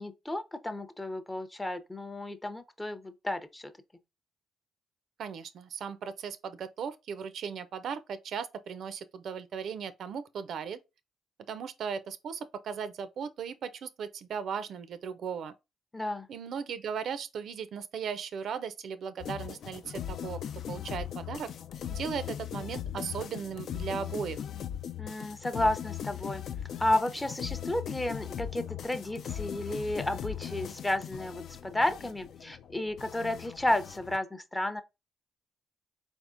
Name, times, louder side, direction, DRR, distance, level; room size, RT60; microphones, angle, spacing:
voice 1, 0.0-3.7 15.9-16.3 25.0-26.4 26.8-34.8, left 1 dB, 15° left, 0.6 m, -32 dB
voice 2, 5.2-10.8 11.5-15.5 16.3-20.4 20.7-21.5 21.9-24.4, right 7 dB, 65° right, 0.4 m, -37 dB
sound 1, 19.2-34.2, left 9 dB, 65° left, 0.3 m, -39 dB
4.1 x 3.5 x 2.5 m
cardioid pair, 90°, 0 cm